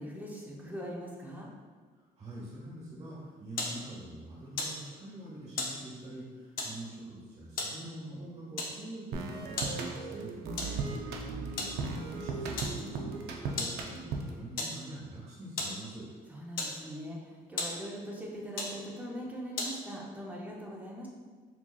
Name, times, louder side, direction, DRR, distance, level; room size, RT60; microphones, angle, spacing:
voice 1, 0.0-1.5 10.4-11.0 16.3-21.1, equal, 10° right, -2 dB, 0.7 m, -41 dB
voice 2, 1.9-10.3 11.1-16.1, right 1 dB, 40° right, -8 dB, 1.4 m, -45 dB
sound 1, 3.1-20.1, left 3 dB, 60° left, 0.7 m, -41 dB
sound 2, 9.1-14.5, right 4 dB, 75° right, 0.5 m, -37 dB
4.6 x 2.8 x 2.3 m, 1.5 s
cardioid pair, 110°, 17 cm